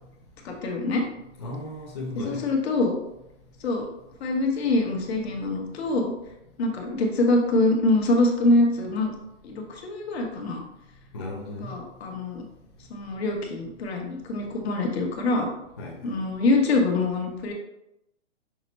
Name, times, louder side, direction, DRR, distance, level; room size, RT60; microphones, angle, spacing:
voice 1, 0.4-1.0 2.1-3.0 3.6-3.9 4.2-6.1 6.6-9.1 9.4-10.6 11.6-12.4 12.9-15.5 16.0-17.5, left 2 dB, 55° left, 1 dB, 1.1 m, -24 dB
voice 2, 1.4-2.5 11.1-11.7 15.8-16.1, left 2 dB, 25° left, -5 dB, 0.4 m, -35 dB
5.8 x 2.1 x 4.1 m, 0.86 s
hypercardioid pair, 165°, 37 cm